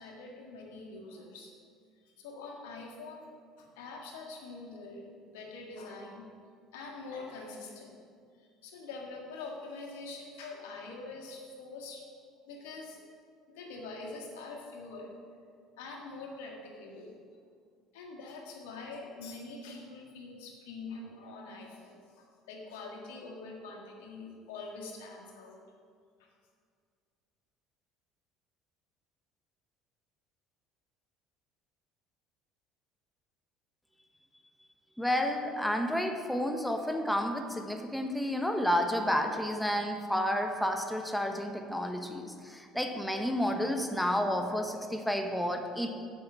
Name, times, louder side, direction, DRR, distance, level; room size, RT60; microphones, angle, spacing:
voice 1, 0.0-1.5 2.2-3.3 3.6-5.0 5.3-6.2 6.7-7.9 8.6-12.0 12.5-13.0 13.5-15.1 15.8-17.2 17.9-25.6, left 3 dB, 85° left, 0 dB, 1.6 m, -44 dB
voice 2, 35.0-45.9, equal, ahead, 4 dB, 0.9 m, -31 dB
8.0 x 5.4 x 7.1 m, 2.2 s
supercardioid pair, 85°, 0 cm